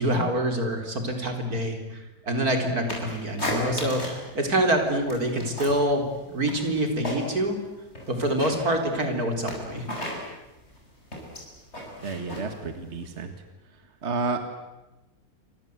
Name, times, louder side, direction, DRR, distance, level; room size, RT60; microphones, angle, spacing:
voice 1, 0.0-4.0 4.3-7.6 8.1-9.9, right 1 dB, 80° right, 4 dB, 4.6 m, -26 dB
sound 1, 2.9-4.3 4.6-5.9 6.2-7.5 7.8-13.2, left 1 dB, 45° left, 7.5 m, -35 dB
voice 2, 12.0-13.3 14.0-14.4, right 3 dB, 50° right, 7 dB, 2.1 m, -30 dB
29.0 x 25.5 x 8.1 m, 1.0 s
omnidirectional pair, 1.6 m